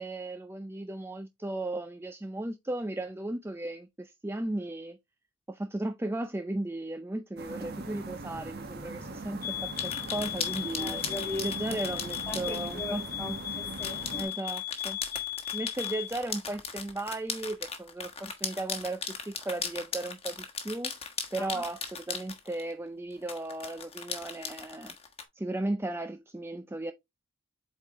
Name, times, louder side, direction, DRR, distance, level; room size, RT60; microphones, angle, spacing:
voice 1, 0.0-5.0 5.5-11.0 11.4-13.0 13.3-13.4 14.2-15.0 15.5-24.9 25.4-26.9, right 2 dB, 10° right, 0.5 m, -36 dB
sound 1, 7.4-14.2, right 2 dB, 50° right, 1.5 m, -41 dB
sound 2, 9.4-16.2, left 13 dB, 45° left, 0.8 m, -37 dB
sound 3, 9.8-12.7 13.7-22.7 23.3-25.2, left 5 dB, 30° left, 1.4 m, -38 dB
voice 2, 10.8-11.8 12.3-14.3 21.4-21.6, equal, 10° left, 2.1 m, -40 dB
8.1 x 4.5 x 3.0 m
head